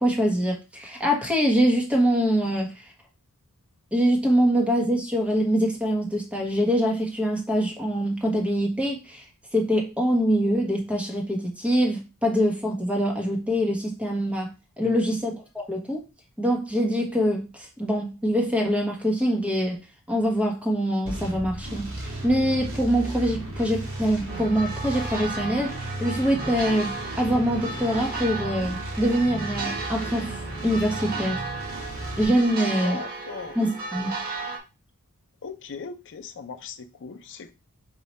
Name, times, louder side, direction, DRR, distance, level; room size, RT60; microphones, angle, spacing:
voice 1, 0.0-2.7 3.9-9.2 9.5-14.5 14.8-16.0 16.4-19.8 20.1-31.4 32.2-33.0 33.5-34.1, equal, 5° right, 1.2 m, -24 dB
voice 2, 14.8-15.2 32.7-33.6 35.4-37.5, left 5 dB, 55° left, 0.5 m, -38 dB
sound 1, 21.0-32.2, right 1 dB, 65° right, 1.9 m, -35 dB
sound 2, 24.3-34.6, right 4 dB, 40° right, 1.0 m, -35 dB
4.5 x 2.8 x 4.2 m
head